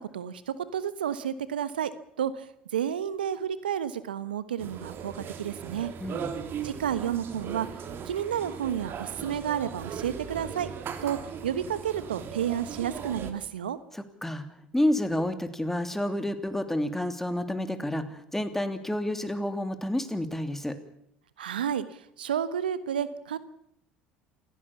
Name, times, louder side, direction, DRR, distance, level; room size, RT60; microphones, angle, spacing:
voice 1, 0.1-1.9 2.2-5.9 6.6-7.7 8.0-10.7 11.0-11.2 11.4-13.8 21.4-23.4, right 9 dB, 85° right, 15 dB, 1.2 m, -31 dB
sound 1, 4.6-13.3, right 7 dB, 50° right, 2.8 m, -38 dB
voice 2, 6.0-6.4 13.9-14.5 14.7-20.8, left 1 dB, 5° left, 9 dB, 3.0 m, -29 dB
28.0 x 16.0 x 7.2 m, 0.74 s
hypercardioid pair, 65°, 5 cm